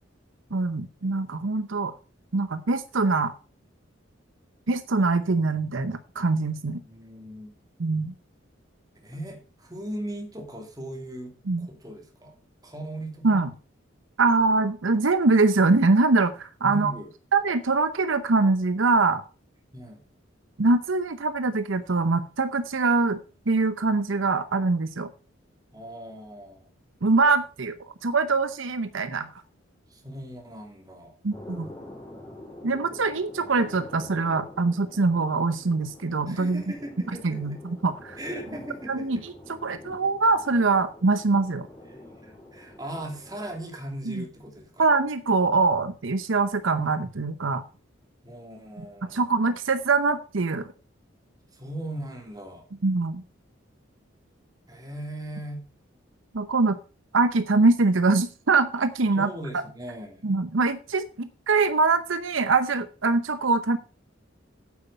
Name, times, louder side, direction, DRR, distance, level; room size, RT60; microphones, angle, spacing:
voice 1, 0.5-1.9 2.3-3.3 4.7-6.8 7.8-8.1 11.5-11.7 13.2-13.5 14.2-16.9 17.3-19.2 20.6-23.2 23.5-25.1 27.0-27.8 28.0-29.3 31.2-31.7 32.6-36.6 37.2-38.2 38.9-39.3 39.6-41.7 44.1-44.2 44.8-47.6 49.0-50.7 52.8-53.2 56.3-56.8 57.1-59.3 60.2-63.8, right 3 dB, 75° right, 11 dB, 0.8 m, -23 dB
voice 2, 6.8-7.6 9.0-12.3 12.6-13.3 16.6-17.1 19.7-20.0 25.7-26.7 29.9-31.1 36.3-37.6 38.2-39.2 41.9-44.9 48.2-49.3 51.5-52.6 54.7-55.7 59.1-60.3, right 1 dB, 20° right, 2 dB, 2.7 m, -38 dB
sound 1, 31.3-43.6, left 1 dB, 20° left, 3.2 m, -46 dB
8.7 x 8.1 x 5.5 m, 0.35 s
head